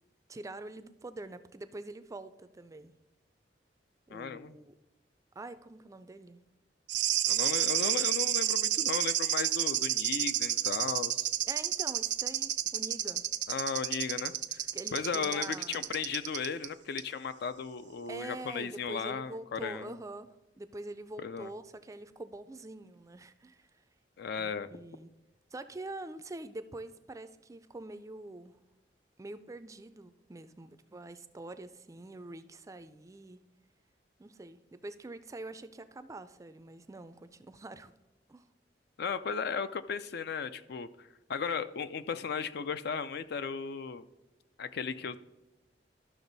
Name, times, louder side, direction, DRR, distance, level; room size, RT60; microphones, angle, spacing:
voice 1, 0.3-2.9 4.1-4.7 5.4-6.4 11.5-13.2 14.7-15.8 18.1-20.3 20.5-23.8 24.3-25.1 25.5-28.6 29.2-33.4 34.2-37.9 38.3-38.5, right 2 dB, 20° right, 12 dB, 0.4 m, -45 dB
voice 2, 4.1-4.6 7.3-11.3 13.5-14.6 14.9-20.0 21.2-21.5 24.2-24.7 39.0-44.0 44.6-45.2, left 6 dB, 65° left, 12 dB, 0.4 m, -36 dB
sound 1, 6.9-16.7 17.0-17.1, right 13 dB, 70° right, 0.5 m, -30 dB
12.5 x 6.1 x 4.0 m, 1.0 s
head